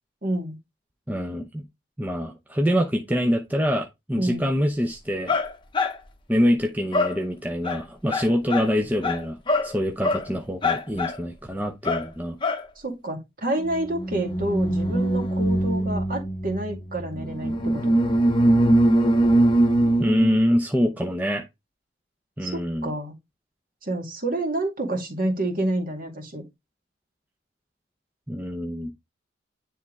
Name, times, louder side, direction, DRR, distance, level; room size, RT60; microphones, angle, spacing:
voice 1, 0.2-0.6 4.2-4.5 12.8-18.0 22.4-23.1 23.8-26.4, right 1 dB, 50° right, 2.1 m, -28 dB
voice 2, 1.1-1.6 2.0-5.3 6.3-9.4 9.6-12.4 20.0-21.4 22.4-22.9 28.3-28.9, equal, 10° right, 0.7 m, -25 dB
sound 1, 5.3-6.0 6.9-7.2 7.6-7.8 8.1-8.7 9.0-9.2 9.5-9.7 10.0-10.2 10.6-11.1 11.8-12.0 12.4-12.6 13.6-20.4, equal, 25° left, 0.9 m, -22 dB
10.0 x 3.6 x 3.1 m
head